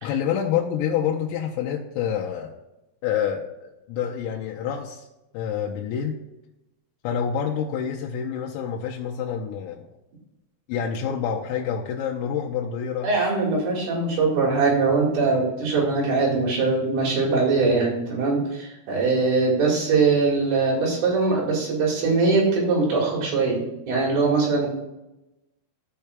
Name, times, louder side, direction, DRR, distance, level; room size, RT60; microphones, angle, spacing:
voice 1, 0.0-2.5 3.0-5.1 5.3-6.2 7.0-9.9 10.7-13.1, left 8 dB, 85° left, -1 dB, 3.4 m, -27 dB
voice 2, 13.0-24.7, right 4 dB, 60° right, -4 dB, 3.4 m, -22 dB
15.5 x 5.5 x 2.3 m, 0.96 s
omnidirectional pair, 5.9 m